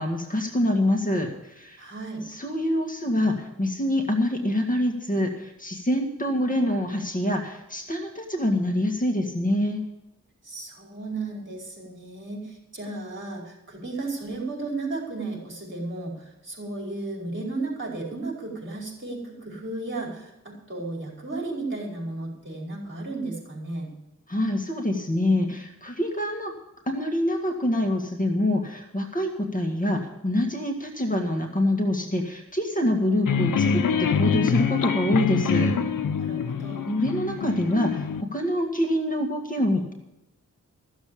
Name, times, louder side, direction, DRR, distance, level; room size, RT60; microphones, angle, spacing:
voice 1, 0.0-1.8 2.3-9.8 24.3-26.5 26.9-35.7 36.9-39.9, left 1 dB, 25° left, 2 dB, 1.9 m, -25 dB
voice 2, 1.8-2.2 10.4-23.9 36.2-36.8, right 2 dB, 40° right, -2 dB, 5.0 m, -34 dB
sound 1, 33.3-38.2, left 6 dB, 80° left, 0.8 m, -25 dB
14.5 x 7.4 x 8.6 m, 0.88 s
wide cardioid pair, 70°, 32 cm